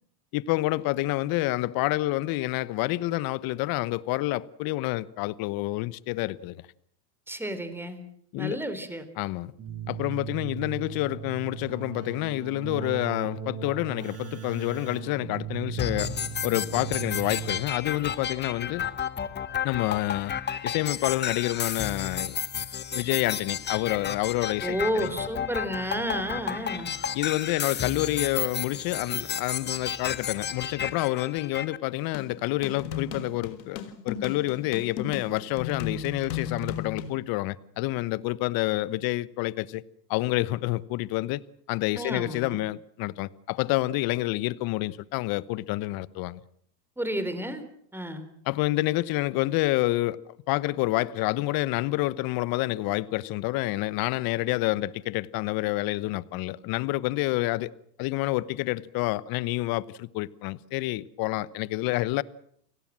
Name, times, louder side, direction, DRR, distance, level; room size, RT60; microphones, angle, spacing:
voice 1, 0.3-6.6 8.3-8.6 9.2-9.5 9.9-16.2 16.4-18.8 19.6-20.3 20.6-22.4 22.9-25.1 27.1-39.8 40.1-41.4 41.7-46.4 48.5-50.2 50.5-57.7 58.0-62.2, left 18 dB, 45° left, 1.1 m, -28 dB
voice 2, 7.3-8.0 8.4-9.0 24.6-26.9 42.0-42.6 47.0-47.7 47.9-48.3, equal, 5° right, 3.9 m, -31 dB
Keyboard (musical), 9.6-17.9, right 9 dB, 30° right, 5.7 m, -37 dB
sound 1, 15.8-31.8, left 8 dB, 20° left, 1.4 m, -32 dB
sound 2, 32.1-37.1, left 7 dB, 85° left, 3.4 m, -35 dB
29.0 x 18.5 x 7.6 m
hypercardioid pair, 110°, 49 cm